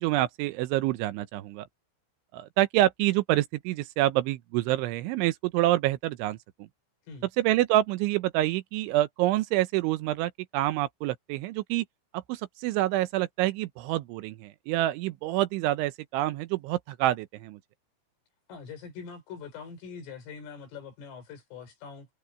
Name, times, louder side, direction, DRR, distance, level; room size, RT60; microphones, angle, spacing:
voice 1, 0.0-1.7 2.3-6.7 7.4-11.8 12.1-17.6, right 15 dB, 80° right, 3.1 m, -27 dB
voice 2, 18.5-22.1, left 6 dB, 80° left, 7.7 m, -43 dB
omnidirectional pair, 5.7 m